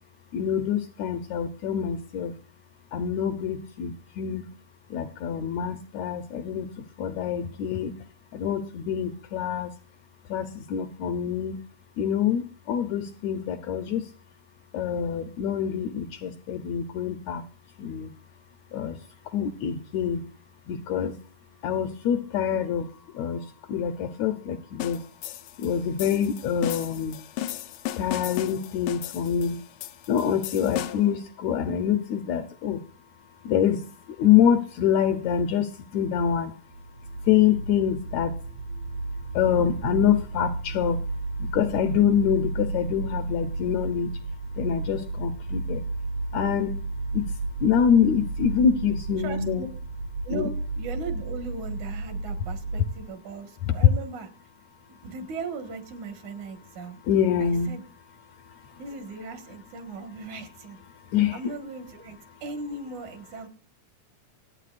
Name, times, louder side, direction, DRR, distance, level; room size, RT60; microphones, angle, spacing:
voice 1, 0.3-2.3 2.9-4.5 4.9-6.7 7.0-7.9 8.3-9.7 10.3-11.6 12.0-14.1 14.7-17.4 17.8-18.1 18.7-19.0 19.3-20.3 20.7-21.2 21.6-25.0 25.6-27.2 28.0-29.6 30.1-32.8 33.4-36.5 37.2-38.4 39.3-41.0 41.4-44.1 44.6-45.9 46.3-46.7 47.1-47.3 47.6-49.6 50.3-50.5 53.7-53.8 57.1-57.7 61.1-61.4, left 8 dB, 75° left, 9 dB, 1.8 m, -25 dB
sound 1, 24.8-31.2, left 13 dB, 90° left, 2.4 m, -35 dB
sound 2, 36.7-53.0, right 2 dB, 90° right, 5.5 m, -33 dB
voice 2, 49.2-49.7 50.2-54.3 54.9-57.0 57.4-57.8 58.8-60.8 61.3-63.5, right 4 dB, 70° right, 6 dB, 2.9 m, -38 dB
26.5 x 9.0 x 2.5 m, 0.39 s
omnidirectional pair, 3.7 m